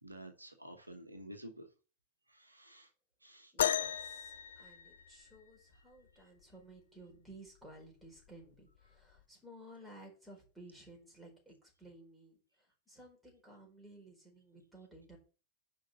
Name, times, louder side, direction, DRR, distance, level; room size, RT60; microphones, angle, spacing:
voice 1, 0.0-1.7 2.3-2.9 3.2-3.5 6.2-6.3, right 1 dB, 85° right, 6 dB, 1.2 m, -51 dB
voice 2, 3.5-15.2, right 1 dB, 5° right, -1 dB, 4.6 m, -56 dB
sound 1, 3.6-5.5 7.1-7.2 8.0-8.3 9.2-9.3, left 9 dB, 65° left, 0.5 m, -35 dB
6.4 x 5.3 x 6.9 m, 0.35 s
figure-of-eight pair, 90°, 0 cm